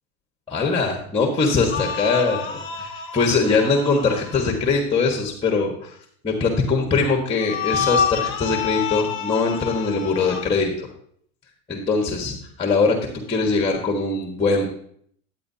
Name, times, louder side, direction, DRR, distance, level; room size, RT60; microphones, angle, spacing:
voice 1, 0.5-6.0 6.2-10.9 11.7-13.0 13.3-14.7, left 4 dB, 15° left, 2 dB, 1.4 m, -22 dB
sound 1, 1.7-4.4 7.4-10.4, left 7 dB, 30° left, 1.2 m, -28 dB
10.5 x 8.8 x 2.8 m, 0.63 s
supercardioid pair, 125°, 38 cm